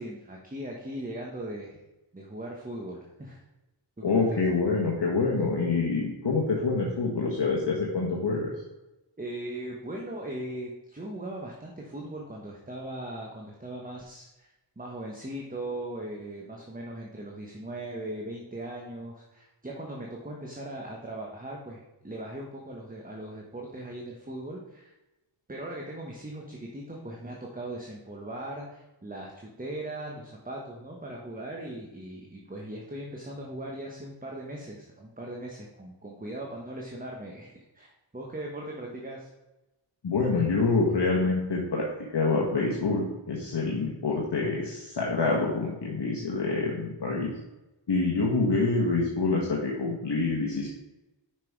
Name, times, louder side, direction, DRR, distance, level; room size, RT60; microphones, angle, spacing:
voice 1, 0.0-1.8 2.1-3.4 4.0-4.4 9.2-24.9 25.5-39.3, right 1 dB, 15° right, -1 dB, 1.2 m, -39 dB
voice 2, 4.0-8.5 40.0-47.3 47.9-50.7, left 3 dB, 55° left, -2 dB, 1.4 m, -26 dB
6.0 x 5.7 x 4.7 m, 1.0 s
cardioid pair, 55°, 49 cm